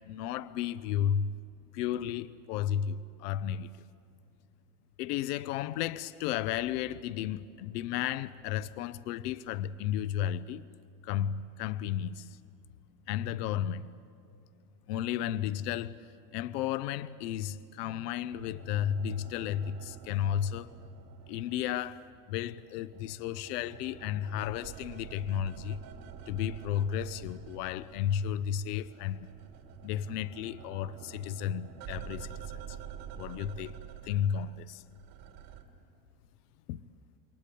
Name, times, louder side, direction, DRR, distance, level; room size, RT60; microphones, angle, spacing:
voice 1, 0.1-1.3 1.7-3.7 5.0-10.6 11.0-12.4 13.1-13.9 14.9-16.0 16.3-20.7 21.3-25.8 26.3-29.3 29.8-32.8 33.2-33.7 34.0-34.8 36.7-36.8, left 10 dB, 80° left, 0.8 m, -33 dB
sound 1, 18.3-22.1 22.4-28.4 28.6-35.6, right 9 dB, 70° right, 3.1 m, -48 dB
28.0 x 22.5 x 8.5 m
supercardioid pair, 110°, 46 cm